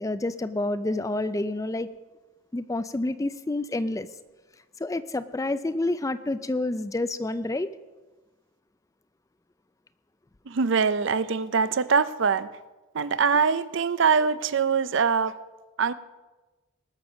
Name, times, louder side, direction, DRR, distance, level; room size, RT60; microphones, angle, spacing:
voice 1, 0.0-1.9 2.5-4.1 4.8-7.7, left 2 dB, 15° left, 13 dB, 0.3 m, -28 dB
voice 2, 10.5-12.5 12.9-15.3 15.8-15.9, right 5 dB, 55° right, 15 dB, 0.5 m, -23 dB
19.5 x 6.8 x 6.1 m, 1.2 s
head